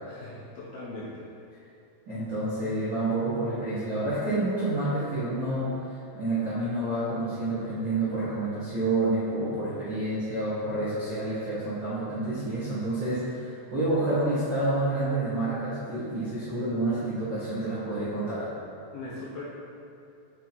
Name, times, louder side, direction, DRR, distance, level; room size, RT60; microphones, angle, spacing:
voice 1, 0.1-1.3 18.9-19.4, left 2 dB, 80° left, -6 dB, 2.3 m, -40 dB
voice 2, 2.1-18.5, right 2 dB, 80° right, -13 dB, 1.0 m, -29 dB
8.0 x 4.0 x 4.4 m, 2.7 s
omnidirectional pair, 5.2 m